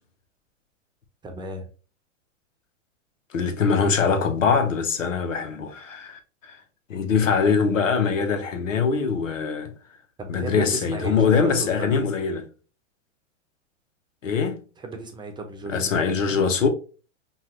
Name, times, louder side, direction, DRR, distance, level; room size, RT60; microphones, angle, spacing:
voice 1, 1.2-1.7 10.2-11.9 14.8-15.9, right 2 dB, 10° right, 0.9 m, -34 dB
voice 2, 3.3-6.6 6.9-9.7 10.3-12.5 14.2-14.6 15.7-16.7, left 5 dB, 85° left, 1.2 m, -23 dB
5.6 x 2.7 x 3.1 m
hypercardioid pair, 120°, 37 cm